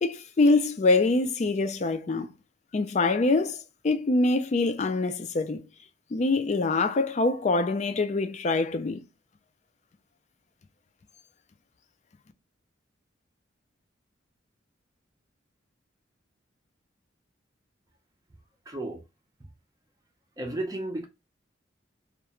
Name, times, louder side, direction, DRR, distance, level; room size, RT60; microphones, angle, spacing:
voice 1, 0.0-2.3 2.7-5.6 6.1-9.0, left 3 dB, 40° left, 0.4 m, -24 dB
voice 2, 18.7-19.0 20.4-21.0, right 1 dB, 20° right, 0.5 m, -33 dB
2.4 x 2.1 x 2.9 m
head